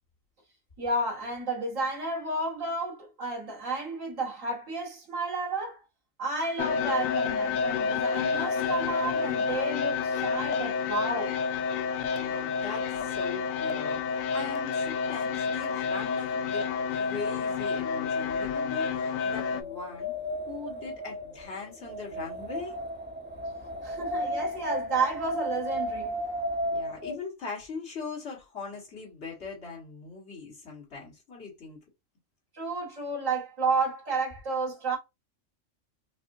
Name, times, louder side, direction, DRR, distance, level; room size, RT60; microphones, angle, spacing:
voice 1, 0.8-5.8 6.2-11.4 23.8-26.2 32.5-35.0, right 3 dB, 70° right, 2.1 m, -31 dB
sound 1, 6.6-19.6, left 5 dB, 85° left, 1.0 m, -29 dB
voice 2, 12.1-20.2 20.5-22.8 26.7-31.8, left 4 dB, 55° left, 1.9 m, -40 dB
Wind, 19.2-27.2, equal, 10° right, 0.8 m, -34 dB
5.3 x 2.1 x 2.6 m
omnidirectional pair, 1.4 m